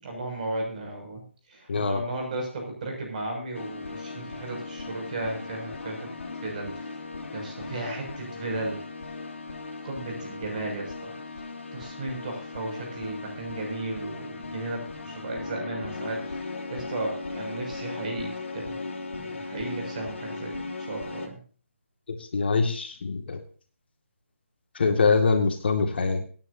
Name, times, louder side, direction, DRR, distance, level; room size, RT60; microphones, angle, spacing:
voice 1, 0.0-1.2 1.5-6.1 6.4-7.1 7.3-8.8 9.8-11.2 11.7-18.8 19.1-20.5 20.9-21.4, right 2 dB, 35° right, 1 dB, 6.6 m, -35 dB
voice 2, 1.7-2.0 22.3-23.4 24.8-26.2, left 4 dB, 50° left, 5 dB, 2.2 m, -23 dB
sound 1, 3.5-21.3, left 3 dB, 70° left, 3.3 m, -38 dB
23.0 x 10.5 x 2.8 m, 0.41 s
figure-of-eight pair, 155°, 7 cm